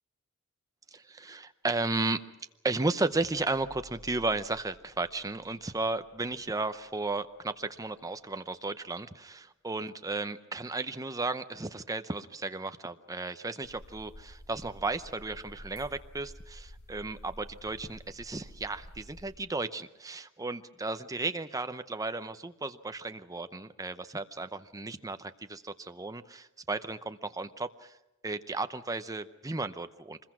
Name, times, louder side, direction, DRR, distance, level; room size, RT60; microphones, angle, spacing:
voice 1, 0.9-2.2 2.6-27.9 28.2-30.2, right 3 dB, 15° right, 10 dB, 0.7 m, -34 dB
sound 1, 6.8-7.6, right 1 dB, 50° right, 1.9 m, -56 dB
sound 2, 13.6-19.3, equal, 45° left, 6.3 m, -50 dB
25.0 x 21.5 x 6.1 m, 0.97 s
head